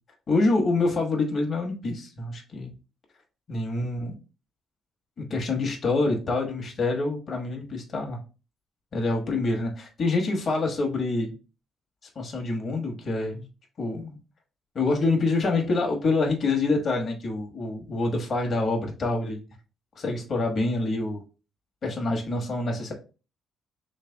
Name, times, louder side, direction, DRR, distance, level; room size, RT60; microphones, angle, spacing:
voice 1, 0.3-2.7 3.5-4.1 5.2-8.2 8.9-11.3 12.1-13.4 13.8-14.2 14.7-19.4 20.0-21.2 21.8-22.9, left 3 dB, 50° left, 2 dB, 1.1 m, -26 dB
3.2 x 3.2 x 3.4 m, 0.33 s
cardioid pair, 90°, 0 cm